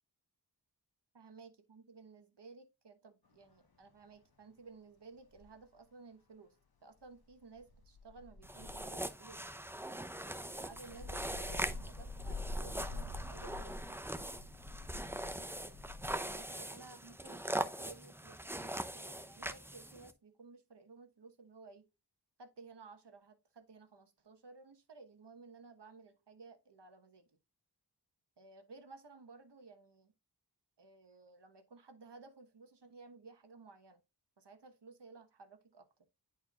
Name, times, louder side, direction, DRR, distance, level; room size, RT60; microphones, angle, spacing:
voice 1, 1.1-6.6 6.8-9.4 10.2-14.3 15.2-15.5 16.3-21.9 22.4-27.4 28.4-30.1 30.8-34.0 34.4-35.9, right 4 dB, 85° right, 1.2 m, -56 dB
sound 1, 3.8-3.9 5.3-5.6 7.5-9.3 10.0-16.4, left 2 dB, 60° left, 1.2 m, -46 dB
sound 2, 8.4-20.1, right 1 dB, 5° right, 0.6 m, -42 dB
10.5 x 4.5 x 2.4 m
wide cardioid pair, 65°, 41 cm